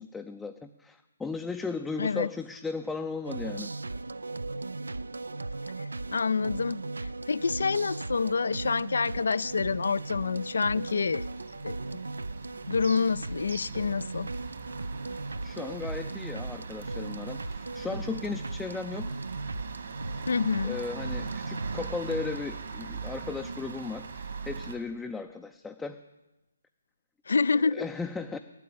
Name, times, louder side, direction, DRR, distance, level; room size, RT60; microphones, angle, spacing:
voice 1, 0.0-3.7 15.4-19.2 20.6-26.0 27.7-28.4, left 4 dB, 5° left, 5 dB, 0.5 m, -36 dB
sound 1, 3.2-22.4, right 3 dB, 75° right, 0.4 m, -37 dB
voice 2, 6.1-6.8 7.3-11.3 11.6-11.8 12.7-14.3 20.3-20.8 27.3-27.8, left 5 dB, 65° left, 21 dB, 0.4 m, -27 dB
sound 2, 7.0-24.8, right 5 dB, 60° right, 1.9 m, -42 dB
12.0 x 9.2 x 8.7 m, 1.0 s
figure-of-eight pair, 140°, 0 cm